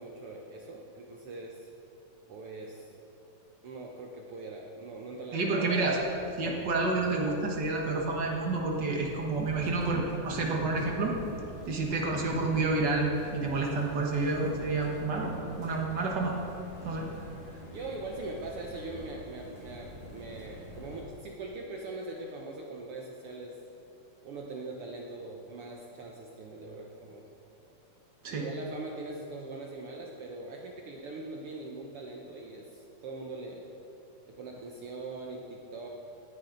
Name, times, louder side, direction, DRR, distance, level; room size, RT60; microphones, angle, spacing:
voice 1, 0.0-1.7 2.3-2.9 3.6-5.4 5.8-5.9 17.7-23.6 24.2-27.3 28.2-33.7 34.3-35.9, right 2 dB, 70° right, 0 dB, 1.3 m, -42 dB
voice 2, 5.3-6.0 6.4-11.2 11.7-15.3 15.6-16.3 16.8-17.1 28.2-28.5, right 3 dB, 50° right, 0 dB, 1.4 m, -29 dB
sound 1, 5.9-21.0, left 1 dB, 60° left, 3.7 m, -46 dB
18.5 x 10.5 x 3.9 m, 2.8 s
omnidirectional pair, 3.7 m